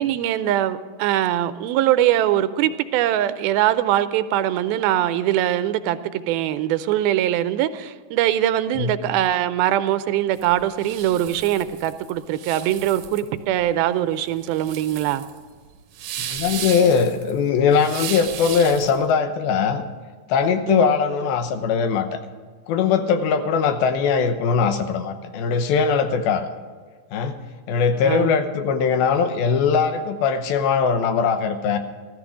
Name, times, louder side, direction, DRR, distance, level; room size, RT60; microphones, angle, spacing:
voice 1, 0.0-15.2 20.7-20.9 28.0-28.3, right 12 dB, 90° right, 12 dB, 2.5 m, -22 dB
sound 1, 10.3-19.0, right 10 dB, 70° right, 1.7 m, -35 dB
voice 2, 16.2-19.8 20.3-22.2 22.7-26.5 27.1-27.4 27.7-31.8, left 6 dB, 85° left, 8 dB, 2.8 m, -20 dB
14.5 x 13.5 x 5.0 m, 1.5 s
omnidirectional pair, 4.3 m